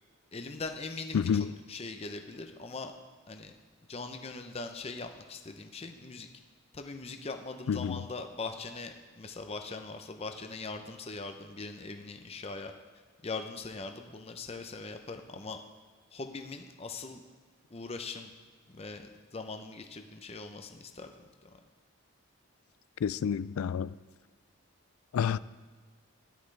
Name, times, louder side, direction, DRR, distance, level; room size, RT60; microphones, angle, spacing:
voice 1, 0.3-2.9 3.3-3.5 3.9-6.3 6.7-12.7 13.2-15.6 16.1-17.2 17.7-18.3 18.7-21.1 21.4-21.5, left 3 dB, 30° left, 0.6 m, -41 dB
voice 2, 1.1-1.5 7.7-8.0 23.0-23.9 25.1-25.4, left 7 dB, 85° left, 0.3 m, -29 dB
13.5 x 10.5 x 3.3 m
head